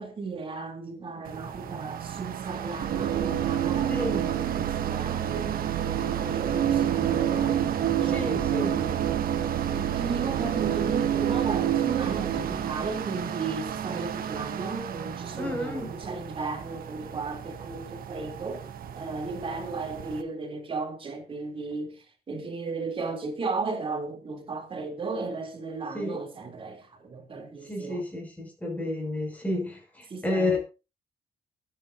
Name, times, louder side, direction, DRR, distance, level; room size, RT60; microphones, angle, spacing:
voice 1, 0.0-5.6 6.0-7.6 7.9-9.2 9.7-18.7 19.0-28.0 30.1-30.6, right 4 dB, 35° right, 3.3 m, -35 dB
sound 1, 1.2-20.2, right 8 dB, 65° right, 1.5 m, -35 dB
sound 2, 2.8-13.6, right 10 dB, 85° right, 2.1 m, -28 dB
voice 2, 3.9-4.3 8.1-8.7 15.4-15.9 25.9-26.2 27.6-30.6, left 2 dB, 10° left, 6.2 m, -31 dB
23.5 x 9.4 x 2.7 m
cardioid pair, 150°, 16 cm